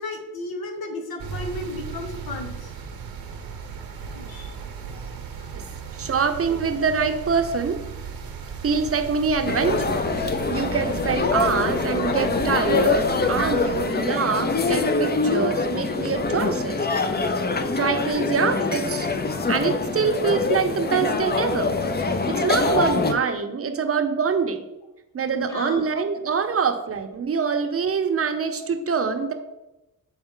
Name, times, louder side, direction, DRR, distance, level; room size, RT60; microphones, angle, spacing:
voice 1, 0.0-2.7 3.0-3.5 4.0-4.6 5.4-5.7 18.1-18.4 25.5-25.9, left 2 dB, 90° left, 4 dB, 1.1 m, -35 dB
sound 1, 1.2-13.8, right 6 dB, 75° right, 0.9 m, -36 dB
voice 2, 6.0-7.8 8.6-16.9 17.8-19.1 19.5-21.7 22.3-24.6 25.1-29.3, right 5 dB, 40° right, 7 dB, 0.7 m, -25 dB
sound 2, 9.5-23.1, left 3 dB, 30° left, 0.6 m, -24 dB
7.2 x 4.3 x 3.7 m, 0.98 s
cardioid pair, 95°, 35 cm